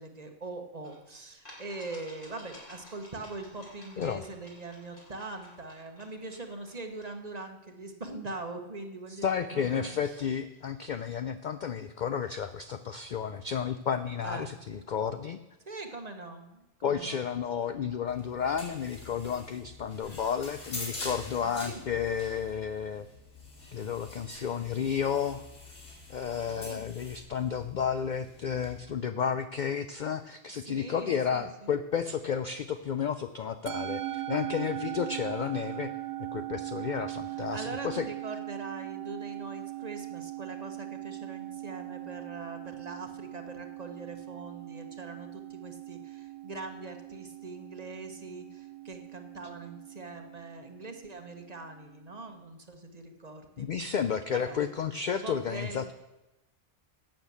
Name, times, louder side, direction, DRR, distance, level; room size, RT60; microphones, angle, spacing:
voice 1, 0.0-10.2 14.2-14.6 15.6-17.2 21.4-21.8 26.5-26.9 30.6-31.7 37.3-53.9 54.3-54.7 55.1-55.9, right 2 dB, 35° right, 5 dB, 1.1 m, -42 dB
sound 1, 0.8-0.9 1.4-7.2, left 1 dB, 45° left, 3.2 m, -53 dB
voice 2, 9.2-15.4 16.8-23.1 23.7-25.5 26.1-35.9 36.3-38.1 53.6-55.9, left 7 dB, 60° left, 10 dB, 0.5 m, -32 dB
sound 2, 18.1-28.8, left 2 dB, 80° left, 2.8 m, -45 dB
Musical instrument, 33.7-52.2, right 15 dB, 85° right, 1.0 m, -40 dB
12.0 x 6.7 x 8.3 m, 1.0 s
omnidirectional pair, 1.3 m